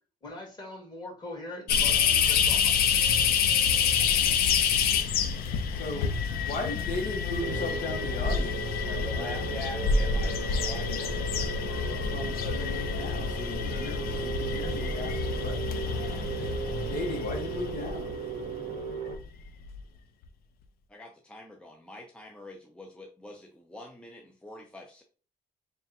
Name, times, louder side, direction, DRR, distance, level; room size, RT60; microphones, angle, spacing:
voice 1, 0.2-2.7, left 2 dB, 30° left, -2 dB, 1.9 m, -42 dB
sound 1, 1.7-18.6 19.1-19.2 19.6-19.8, left 6 dB, 80° left, 0.5 m, -28 dB
voice 2, 5.7-6.1 6.4-8.6 8.9-9.3 11.7-15.9 16.8-18.1, left 2 dB, 60° left, 1 dB, 1.0 m, -37 dB
sound 2, 7.4-19.2, right 5 dB, 80° right, 0.7 m, -37 dB
voice 3, 9.0-11.1 20.9-25.0, left 1 dB, 5° left, 2 dB, 0.5 m, -44 dB
3.5 x 2.2 x 4.1 m, 0.37 s
cardioid pair, 115°, 15 cm